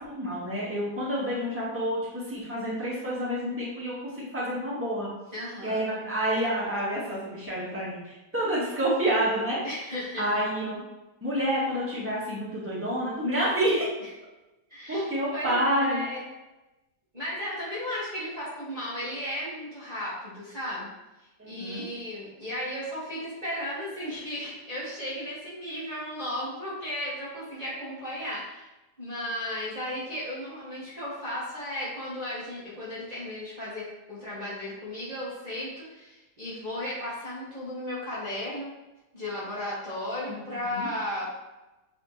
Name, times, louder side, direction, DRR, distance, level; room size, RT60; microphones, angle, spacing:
voice 1, 0.1-5.1 5.6-9.6 10.2-10.8 11.2-13.8 14.9-16.0 21.4-21.9 40.3-40.9, equal, 10° right, -7 dB, 1.7 m, -28 dB
voice 2, 5.3-5.8 9.6-10.3 14.0-14.1 14.7-15.0 15.3-16.2 17.1-20.9 21.4-28.7 29.0-38.7 39.1-41.3, left 1 dB, 25° right, -10 dB, 1.6 m, -35 dB
8.3 x 3.4 x 3.3 m, 1.0 s
omnidirectional pair, 1.7 m